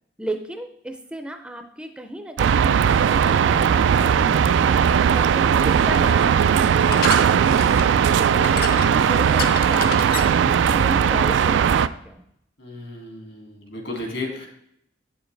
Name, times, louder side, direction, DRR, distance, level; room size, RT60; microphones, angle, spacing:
voice 1, 0.2-12.2, right 1 dB, 5° right, 6 dB, 0.5 m, -35 dB
sound 1, 2.4-11.9, right 7 dB, 80° right, 0.3 m, -18 dB
sound 2, 4.4-11.3, left 5 dB, 55° left, 0.6 m, -34 dB
voice 2, 12.6-14.5, left 2 dB, 75° left, 1 dB, 2.3 m, -33 dB
8.1 x 7.0 x 3.3 m, 0.74 s
head